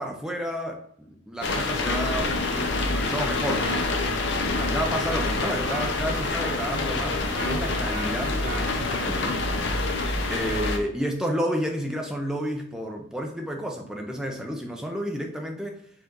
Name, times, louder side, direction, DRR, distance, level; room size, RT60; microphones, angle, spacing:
voice 1, 0.0-3.9 4.6-9.4 10.3-15.8, equal, 5° right, 2 dB, 0.5 m, -31 dB
sound 1, 1.4-10.8, left 2 dB, 60° left, 0.6 m, -26 dB
sound 2, 3.6-3.8 5.1-5.3 5.7-6.0 7.3-7.5 7.9-8.1 8.4-8.7, right 3 dB, 35° right, 1.6 m, -36 dB
4.8 x 2.5 x 3.8 m, 0.68 s
head